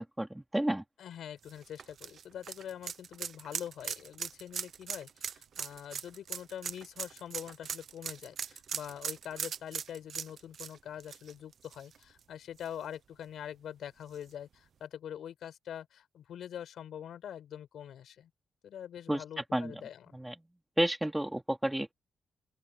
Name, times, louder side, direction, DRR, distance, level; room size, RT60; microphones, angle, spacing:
voice 1, 0.0-0.8 19.1-19.8 20.1-20.3 20.8-21.9, right 1 dB, 5° right, 2.7 m, -31 dB
voice 2, 1.0-18.3 18.6-20.2, left 9 dB, 85° left, 6.6 m, -44 dB
sound 1, 1.4-12.2 12.6-12.7 14.1-14.2, right 7 dB, 60° right, 0.9 m, -40 dB
open air
wide cardioid pair, 140°, 0 cm